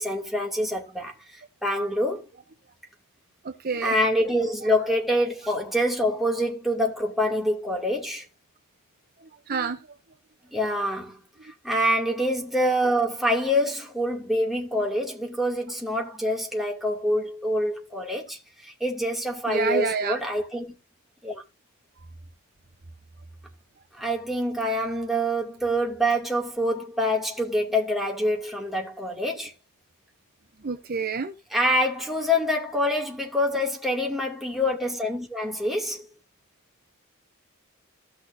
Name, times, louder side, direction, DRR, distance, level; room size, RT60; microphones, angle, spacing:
voice 1, 0.0-2.3 3.8-8.2 10.5-11.2 11.4-20.8 21.2-21.4 23.9-29.5 31.5-36.1, equal, ahead, 2.5 m, -26 dB
voice 2, 3.4-4.0 9.5-9.8 19.5-20.2 30.6-31.3, right 5 dB, 45° right, 0.7 m, -28 dB
16.0 x 6.1 x 2.7 m
head